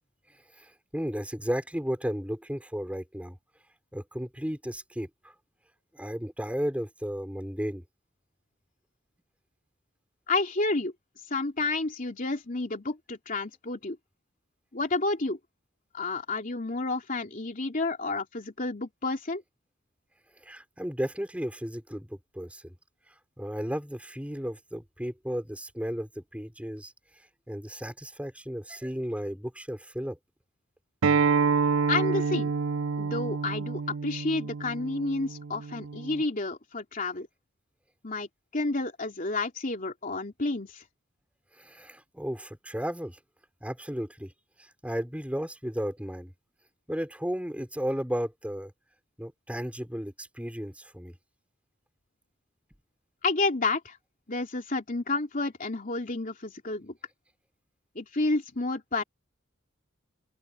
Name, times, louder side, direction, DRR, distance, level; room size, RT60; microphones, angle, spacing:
voice 1, 0.6-3.4 3.9-5.1 5.9-7.8 20.4-22.7 23.4-26.9 27.5-30.2 41.6-43.2 43.6-44.3 44.6-46.3 46.9-48.7 49.2-51.2, equal, 5° right, 5.5 m, -34 dB
voice 2, 10.3-10.9 11.3-14.0 14.7-15.4 15.9-19.4 31.9-32.5 33.0-37.3 38.0-40.8 53.2-54.0 54.3-56.9 57.9-59.0, left 3 dB, 40° left, 2.9 m, -30 dB
Acoustic guitar, 31.0-36.2, right 5 dB, 85° right, 0.5 m, -28 dB
open air
head